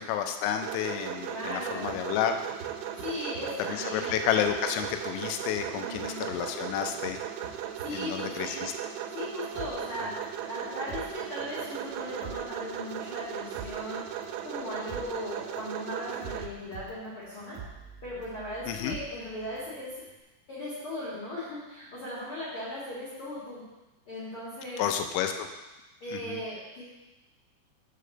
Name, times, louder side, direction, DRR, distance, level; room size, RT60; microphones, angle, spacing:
voice 1, 0.0-2.4 3.7-7.2 7.9-8.7 18.7-19.0 24.8-25.5 26.1-26.4, left 9 dB, 90° left, 6 dB, 3.1 m, -30 dB
sound 1, 0.6-16.5, right 10 dB, 90° right, 3.0 m, -37 dB
voice 2, 1.3-1.9 3.0-4.1 5.7-6.2 7.8-8.6 9.1-10.1 10.4-14.0 14.4-17.6 18.0-20.0 20.5-23.6 24.1-24.8 26.0-26.9, left 1 dB, 45° left, -9 dB, 1.9 m, -38 dB
sound 2, 1.9-2.0 2.4-3.4 3.9-5.0 5.4-7.9, right 5 dB, 30° right, 2.1 m, -48 dB
sound 3, 9.6-11.8 12.1-19.8 20.1-20.2, right 7 dB, 70° right, 2.4 m, -45 dB
6.7 x 5.0 x 6.6 m, 1.1 s
omnidirectional pair, 5.3 m